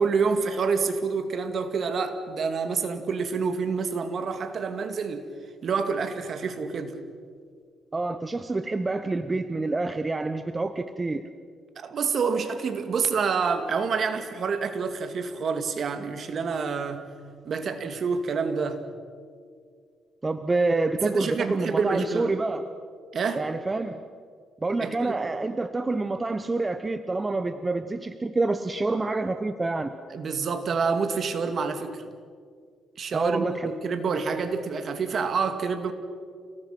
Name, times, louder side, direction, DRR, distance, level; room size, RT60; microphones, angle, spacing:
voice 1, 0.0-5.2 5.6-7.0 11.8-17.0 17.5-18.8 21.0-22.3 23.1-23.4 24.8-25.2 30.1-32.0 33.0-35.9, right 5 dB, 55° right, 2.3 m, -27 dB
voice 2, 7.9-11.3 20.2-22.6 23.3-24.0 24.6-29.9 33.1-33.7, right 3 dB, 20° right, 1.0 m, -27 dB
29.5 x 18.5 x 6.0 m
cardioid pair, 90°, 0 cm